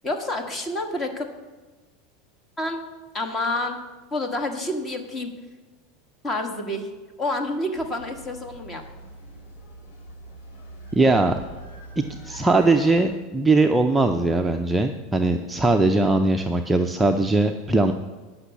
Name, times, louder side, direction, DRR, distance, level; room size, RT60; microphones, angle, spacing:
voice 1, 0.0-1.3 2.6-2.8 3.1-3.8 4.1-5.3 6.2-6.9 7.2-8.8, left 1 dB, 20° left, 5 dB, 1.4 m, -28 dB
sound 1, 7.7-13.1, right 2 dB, 60° left, 2.9 m, -43 dB
voice 2, 10.9-11.4 12.0-17.9, right 2 dB, 10° right, 4 dB, 0.5 m, -20 dB
9.9 x 6.0 x 8.1 m, 1.3 s
supercardioid pair, 145°, 0 cm